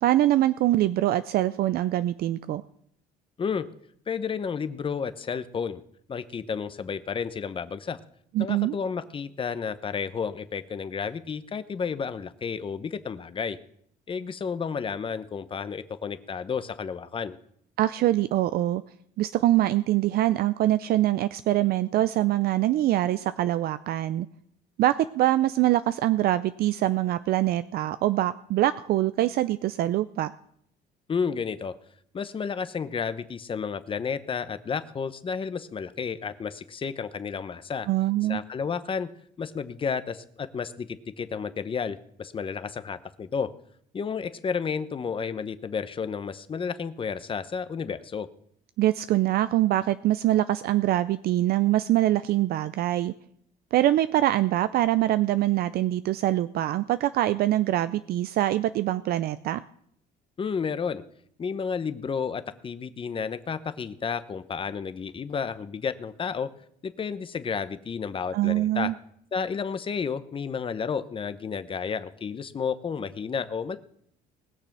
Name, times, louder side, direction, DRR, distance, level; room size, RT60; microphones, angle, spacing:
voice 1, 0.0-2.6 8.3-8.8 17.8-18.8 19.2-24.3 24.8-30.3 37.9-38.4 48.8-53.1 53.7-59.6 68.3-68.9, right 14 dB, 65° right, 13 dB, 0.5 m, -24 dB
voice 2, 4.1-5.8 6.1-8.0 8.4-13.6 14.1-17.4 31.1-31.8 32.1-37.9 38.3-39.1 39.4-43.5 43.9-48.3 60.4-61.0 61.4-66.5 66.8-68.9 69.3-73.8, left 6 dB, 30° left, 12 dB, 0.9 m, -31 dB
20.0 x 6.8 x 6.0 m, 0.68 s
cardioid pair, 110°, 17 cm